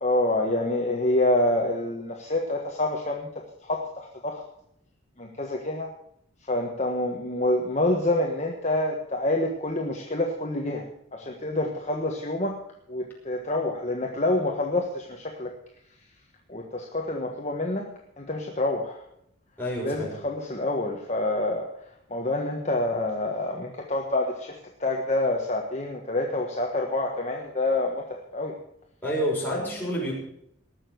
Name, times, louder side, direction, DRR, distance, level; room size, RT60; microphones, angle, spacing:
voice 1, 0.0-3.3 3.6-4.4 5.2-5.9 6.4-10.8 11.1-12.6 12.9-15.5 16.5-17.9 18.2-19.0 19.8-21.7 22.1-24.5 24.8-28.5 29.5-29.7, left 2 dB, 30° left, 0 dB, 1.4 m, -27 dB
voice 2, 19.6-20.1 29.0-30.1, equal, 10° left, -4 dB, 5.9 m, -28 dB
19.5 x 6.9 x 7.9 m, 0.73 s
head